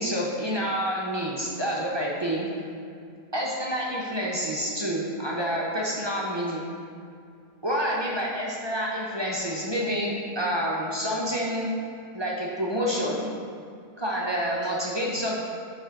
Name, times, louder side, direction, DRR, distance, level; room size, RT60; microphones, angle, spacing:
voice 1, 0.0-2.5 3.3-6.6 7.6-11.7 12.1-13.3 14.0-15.3, equal, 25° right, -4 dB, 0.6 m, -28 dB
6.7 x 4.3 x 5.2 m, 2.4 s
omnidirectional pair, 1.6 m